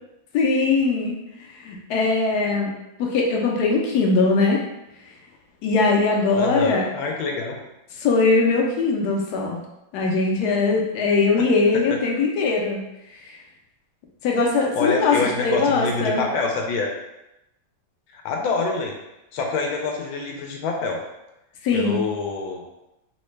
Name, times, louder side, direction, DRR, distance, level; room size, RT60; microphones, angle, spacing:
voice 1, 0.3-1.2 1.6-2.7 3.0-4.6 5.6-6.8 8.0-9.6 9.9-12.8 14.2-16.3 21.6-22.0, left 3 dB, 70° left, 0 dB, 1.0 m, -20 dB
voice 2, 6.4-7.6 11.4-11.5 11.9-12.0 14.7-16.9 18.1-19.0 19.3-21.0 21.7-22.6, left 4 dB, 90° left, 1 dB, 1.3 m, -26 dB
3.8 x 2.1 x 3.1 m, 0.91 s
omnidirectional pair, 2.1 m